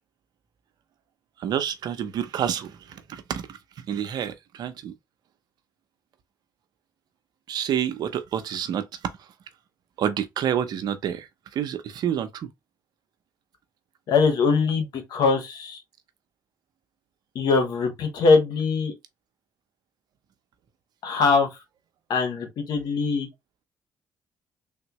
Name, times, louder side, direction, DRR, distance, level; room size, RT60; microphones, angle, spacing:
voice 1, 1.4-3.5 3.9-4.9 7.5-8.9 10.0-11.3 11.5-12.5, right 9 dB, 70° right, 0.6 m, -28 dB
voice 2, 14.1-14.9 15.1-15.8 17.3-18.9 21.0-21.5 22.1-23.3, left 4 dB, 75° left, 1.0 m, -22 dB
3.4 x 2.2 x 2.9 m
cardioid pair, 80°, 7 cm